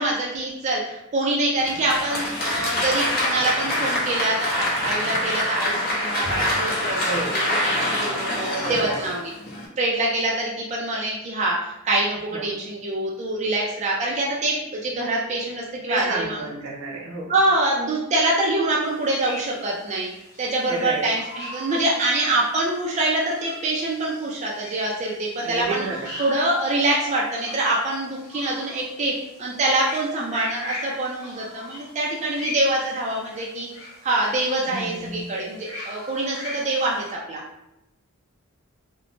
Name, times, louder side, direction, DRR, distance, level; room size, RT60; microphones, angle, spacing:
voice 1, 0.0-9.2 9.8-16.4 17.3-20.1 20.4-25.9 26.2-29.1 29.4-33.7 34.0-37.4, right 2 dB, 35° right, -3 dB, 0.3 m, -25 dB
Applause, 1.6-9.7, left 1 dB, 45° left, 0.6 m, -25 dB
voice 2, 8.5-9.0 12.3-12.5 15.9-17.3 20.7-21.1 25.4-26.1 34.7-35.3, right 3 dB, 80° right, -4 dB, 0.8 m, -31 dB
sound 1, 18.8-37.1, left 1 dB, 75° left, 0.9 m, -40 dB
3.0 x 2.0 x 2.5 m, 0.88 s
head